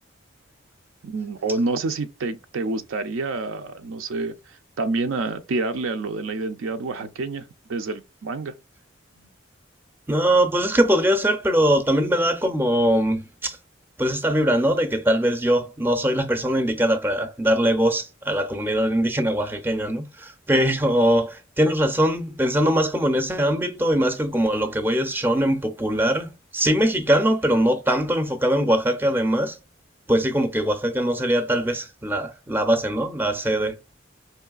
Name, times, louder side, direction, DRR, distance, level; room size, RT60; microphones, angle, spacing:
voice 1, 1.0-8.5, right 3 dB, 75° right, 0.4 m, -28 dB
voice 2, 10.1-13.6 14.0-29.6 30.1-33.7, equal, 10° right, 0.4 m, -22 dB
4.5 x 3.1 x 2.3 m
head